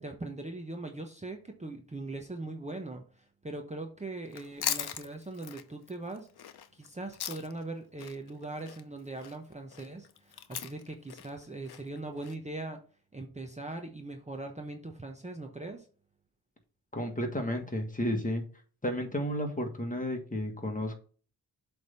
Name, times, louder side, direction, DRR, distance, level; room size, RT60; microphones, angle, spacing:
voice 1, 0.0-6.3 6.7-12.8 13.1-15.9, right 2 dB, 20° right, 3 dB, 0.9 m, -40 dB
Chewing mastication, 4.3-7.7 8.0-12.3, left 10 dB, 80° left, 0.7 m, -39 dB
voice 2, 16.9-18.4 18.8-21.0, equal, 20° left, 3 dB, 1.6 m, -32 dB
7.8 x 3.5 x 5.6 m, 0.41 s
cardioid pair, 75°, 38 cm